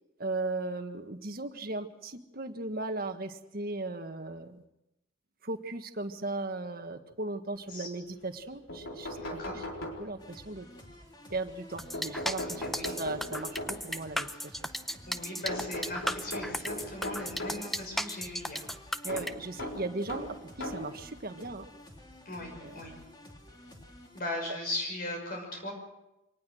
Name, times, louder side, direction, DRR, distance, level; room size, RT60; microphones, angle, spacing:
voice 1, 0.2-4.6 5.4-9.6 10.0-10.7 11.3-12.6 13.0-14.6 19.0-21.6 22.6-22.8 24.5-24.6, right 2 dB, 50° right, 7 dB, 1.6 m, -37 dB
sound 1, 8.4-8.5 8.7-10.4 11.9-14.0 15.5-17.7 19.1-21.0 21.8-21.9 23.2-23.3 23.7-23.8, left 1 dB, 90° left, 4.3 m, -39 dB
voice 2, 9.1-9.6 12.6-13.0 15.1-18.6 22.2-22.9 24.1-25.7, left 1 dB, 45° left, 1 dB, 6.4 m, -38 dB
sound 2, 10.2-24.2, left 1 dB, 20° left, 3.2 m, -52 dB
sound 3, 11.8-19.3, equal, ahead, 0.7 m, -35 dB
25.0 x 19.5 x 6.4 m, 0.91 s
head